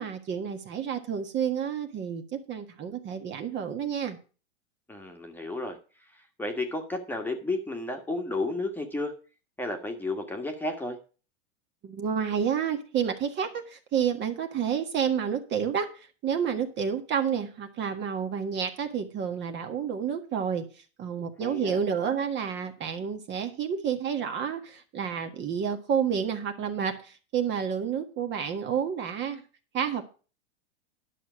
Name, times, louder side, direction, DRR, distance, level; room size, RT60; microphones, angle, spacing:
voice 1, 0.0-4.2 11.8-15.9 16.2-20.6 21.0-29.4 29.7-30.0, right 7 dB, 30° right, 6 dB, 1.6 m, -30 dB
voice 2, 4.9-5.8 6.1-9.1 9.6-11.0 21.4-21.8, left 2 dB, 5° left, 3 dB, 1.5 m, -32 dB
11.0 x 6.5 x 6.2 m, 0.36 s
hypercardioid pair, 125°, 35 cm